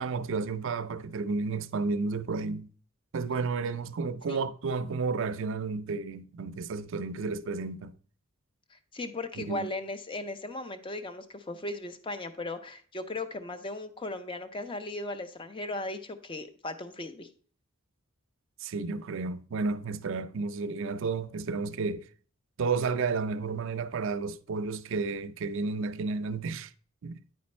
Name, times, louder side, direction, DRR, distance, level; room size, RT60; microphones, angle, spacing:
voice 1, 0.0-2.7 3.1-7.9 9.4-9.7 18.6-22.1 22.6-26.7 27.0-27.2, right 4 dB, 60° right, 0.4 m, -32 dB
voice 2, 8.7-17.3, left 2 dB, 25° left, 0.6 m, -37 dB
9.6 x 4.2 x 4.3 m
head